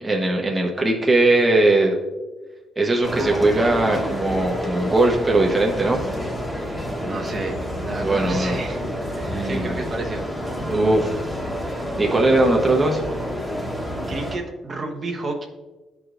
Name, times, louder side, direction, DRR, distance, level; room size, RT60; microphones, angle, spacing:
voice 1, 0.0-2.0 2.8-6.1 8.0-8.5 9.3-9.8 10.6-11.2 11.6-13.0, right 2 dB, 20° right, 0 dB, 0.9 m, -20 dB
sound 1, 3.0-14.4, equal, 10° left, 1.2 m, -29 dB
voice 2, 7.0-7.6 7.8-8.8 9.2-10.2 14.1-15.4, right 3 dB, 40° right, 1 dB, 1.0 m, -30 dB
10.5 x 4.8 x 2.5 m, 1.2 s
cardioid pair, 90°, 0 cm